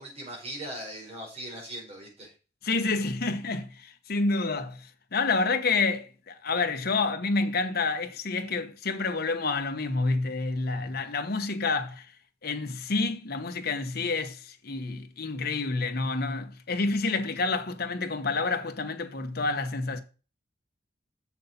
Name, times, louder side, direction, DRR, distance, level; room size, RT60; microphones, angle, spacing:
voice 1, 0.0-2.3, right 1 dB, 35° right, 4.8 m, -39 dB
voice 2, 2.6-12.1 12.4-20.0, left 3 dB, 55° left, 1.1 m, -29 dB
7.1 x 6.5 x 5.3 m
head